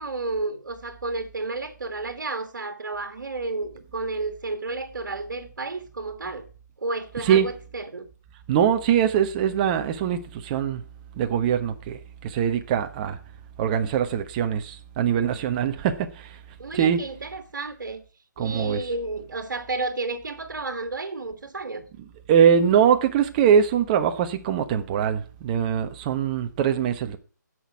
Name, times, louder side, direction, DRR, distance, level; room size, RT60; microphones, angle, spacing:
voice 1, 0.0-6.5 6.8-8.1 16.6-18.0 18.4-21.9, right 3 dB, 75° right, 1.7 m, -31 dB
voice 2, 8.5-10.8 11.2-13.2 13.6-16.4 16.7-17.0 18.4-18.8 22.3-27.2, right 8 dB, 25° right, 1.0 m, -22 dB
15.5 x 6.3 x 4.7 m
figure-of-eight pair, 150°, 10 cm